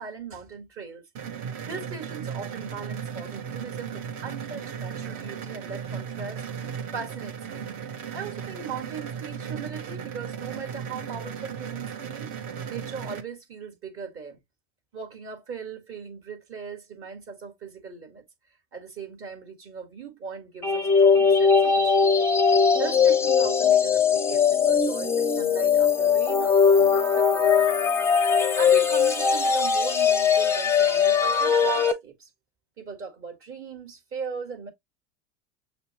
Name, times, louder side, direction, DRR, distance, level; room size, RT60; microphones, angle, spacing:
voice 1, 0.0-7.7 8.1-14.4 14.9-18.2 18.7-22.3 22.8-27.8 28.2-32.3 32.8-34.7, right 5 dB, 35° right, 1.8 m, -39 dB
sound 1, 1.2-13.2, right 7 dB, 50° right, 1.3 m, -36 dB
sound 2, 20.6-31.9, left 6 dB, 5° left, 0.5 m, -20 dB
6.6 x 2.3 x 2.9 m
supercardioid pair, 120°, 38 cm